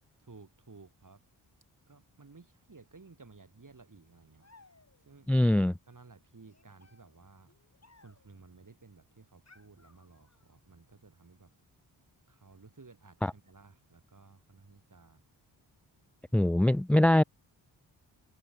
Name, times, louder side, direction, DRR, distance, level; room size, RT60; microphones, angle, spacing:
voice 1, 0.2-1.2 1.9-4.5 5.0-5.3 5.9-7.5 7.9-11.5 12.3-15.2, right 4 dB, 40° right, 6.3 m, -56 dB
sound 1, 4.4-5.2 6.4-8.4 9.5-10.6, left 3 dB, 35° left, 4.9 m, -62 dB
voice 2, 5.3-5.7 16.3-17.2, left 1 dB, 5° left, 0.3 m, -22 dB
cardioid pair, 45°, 46 cm